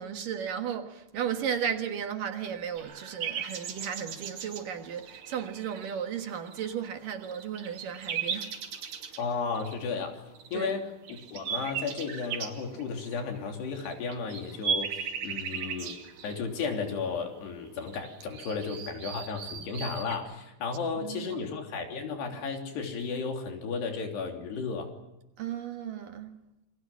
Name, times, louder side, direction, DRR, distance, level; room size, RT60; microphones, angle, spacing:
voice 1, 0.0-8.5 10.5-10.7 21.0-21.4 25.4-26.4, right 8 dB, 60° right, 2.9 m, -34 dB
sound 1, 2.8-6.9 7.2-9.8 10.4-10.7 11.1-20.2, right 7 dB, 80° right, 4.7 m, -37 dB
voice 2, 9.2-10.2 10.5-10.9 11.3-16.0 16.2-24.9, left 5 dB, 80° left, 5.4 m, -34 dB
28.5 x 22.5 x 7.3 m
omnidirectional pair, 4.7 m